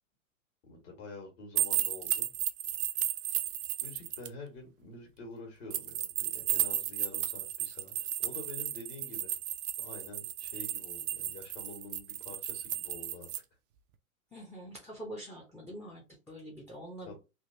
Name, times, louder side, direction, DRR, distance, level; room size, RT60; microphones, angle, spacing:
voice 1, 0.6-2.3 3.8-9.4 9.8-13.3 17.0-17.2, left 2 dB, 50° left, 2 dB, 1.7 m, -47 dB
sound 1, 1.6-4.3 5.7-13.4, right 12 dB, 40° right, 0.4 m, -34 dB
voice 2, 14.3-17.2, right 1 dB, 5° left, -1 dB, 0.7 m, -45 dB
3.4 x 2.4 x 2.7 m, 0.27 s
hypercardioid pair, 115°, 43 cm